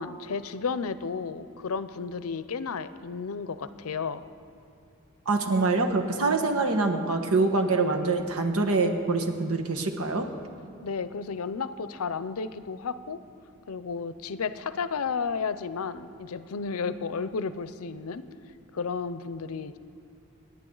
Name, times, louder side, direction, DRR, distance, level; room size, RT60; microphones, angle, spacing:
voice 1, 0.0-4.2 10.8-13.2 13.7-18.2 18.7-19.8, left 5 dB, 80° left, 14 dB, 0.6 m, -32 dB
voice 2, 5.2-10.3, right 3 dB, 80° right, 4 dB, 1.3 m, -25 dB
27.5 x 10.0 x 3.9 m, 2.6 s
head